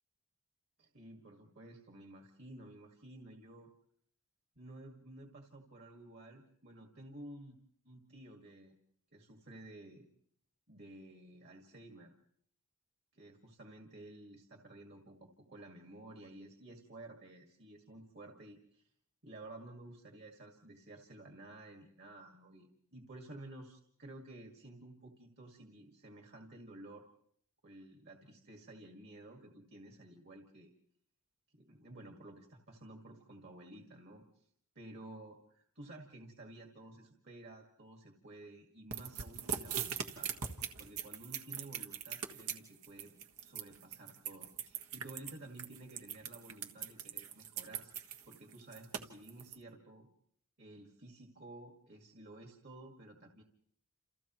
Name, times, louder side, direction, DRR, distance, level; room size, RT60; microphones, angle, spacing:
voice 1, 0.8-3.7 4.6-7.6 7.8-8.8 9.1-10.1 10.7-12.1 13.1-18.9 19.2-27.1 27.6-30.7 31.5-34.5 34.8-40.3 40.8-43.1 43.4-48.0 48.3-50.1 50.6-53.4, right 1 dB, 50° right, 3 dB, 2.0 m, -53 dB
sound 1, 38.9-49.6, right 8 dB, 80° right, 1.6 m, -40 dB
29.5 x 28.5 x 3.1 m, 0.67 s
head